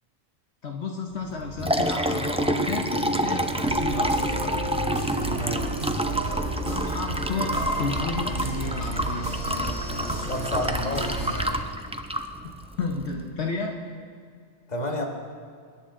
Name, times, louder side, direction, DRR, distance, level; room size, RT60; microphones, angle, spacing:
voice 1, 0.6-4.4 6.7-9.4 12.4-13.7, left 4 dB, 70° left, 1 dB, 1.3 m, -32 dB
Liquid, 1.3-13.2, right 1 dB, 10° right, 0.4 m, -28 dB
sound 1, 3.7-11.5, right 1 dB, 45° right, 4.3 m, -32 dB
voice 2, 5.3-5.9 10.1-11.4 14.7-15.1, left 1 dB, 35° left, 1 dB, 1.8 m, -31 dB
26.0 x 11.0 x 3.8 m, 2.1 s
omnidirectional pair, 1.2 m